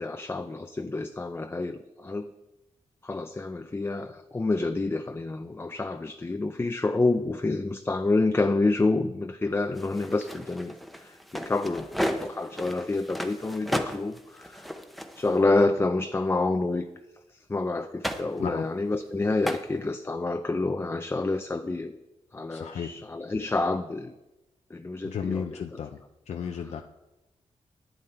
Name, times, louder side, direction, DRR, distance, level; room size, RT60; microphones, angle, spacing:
voice 1, 0.0-2.3 3.0-14.7 15.2-16.9 17.3-22.0 22.3-24.1 24.7-25.8 26.6-26.7, left 2 dB, 20° left, 8 dB, 0.5 m, -28 dB
sound 1, 9.7-15.4 18.0-18.4 19.5-19.6, equal, ahead, 0.8 m, -34 dB
voice 2, 22.5-22.9 25.0-26.0 26.3-26.8, left 7 dB, 75° left, 5 dB, 0.6 m, -33 dB
11.0 x 9.4 x 4.3 m, 1.0 s
wide cardioid pair, 105°, 12 cm